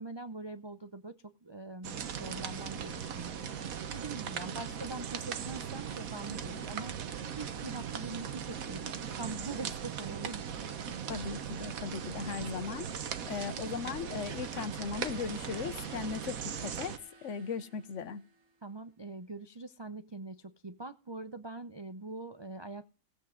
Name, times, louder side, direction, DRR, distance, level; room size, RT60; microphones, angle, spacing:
voice 1, 0.0-3.5 3.9-6.9 7.3-8.9 9.2-11.1 18.6-22.9, right 3 dB, 45° right, 8 dB, 0.3 m, -43 dB
sound 1, 1.8-17.0, right 8 dB, 80° right, 1.4 m, -39 dB
voice 2, 11.1-12.9 13.2-16.9 17.2-18.2, left 6 dB, 65° left, 15 dB, 1.0 m, -38 dB
sound 2, 14.9-18.8, right 4 dB, 65° right, 2.0 m, -54 dB
17.5 x 8.2 x 3.7 m, 0.37 s
omnidirectional pair, 1.4 m